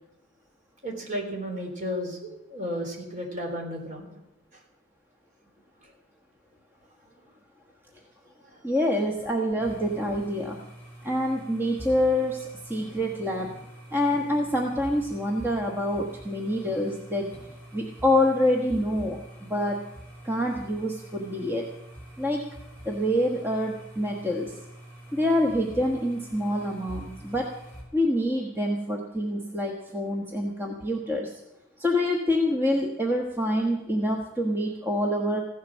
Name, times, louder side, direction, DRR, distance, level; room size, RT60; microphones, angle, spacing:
voice 1, 0.8-4.1 5.8-5.9 8.4-8.6, equal, 40° right, 1 dB, 3.8 m, -33 dB
voice 2, 8.6-10.6 11.0-13.6 13.9-17.3 17.7-19.8 20.2-21.6 22.2-22.4 22.8-24.5 25.1-27.5 27.9-31.3 31.8-35.4, left 1 dB, 10° right, 0 dB, 1.2 m, -26 dB
sound 1, 9.6-27.8, right 1 dB, 10° left, 6.0 m, -45 dB
16.0 x 11.0 x 6.3 m, 0.89 s
head